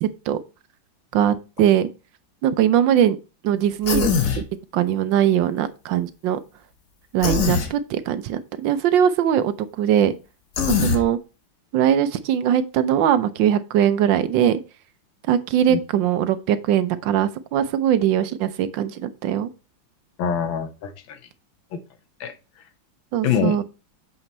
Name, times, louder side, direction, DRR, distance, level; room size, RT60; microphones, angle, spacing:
voice 1, 0.0-0.4 1.1-1.9 2.4-3.2 3.4-4.1 4.7-6.4 7.1-10.1 10.7-11.2 11.7-14.6 15.3-19.5 23.1-23.6, right 10 dB, 75° right, 1.3 m, -21 dB
Human voice, 3.8-4.4 7.2-7.7 10.6-11.0, left 6 dB, 50° left, 1.2 m, -21 dB
voice 2, 20.2-21.2 21.7-21.8 22.2-22.3 23.2-23.6, left 7 dB, 85° left, 1.7 m, -24 dB
8.0 x 4.4 x 4.2 m
omnidirectional pair, 2.1 m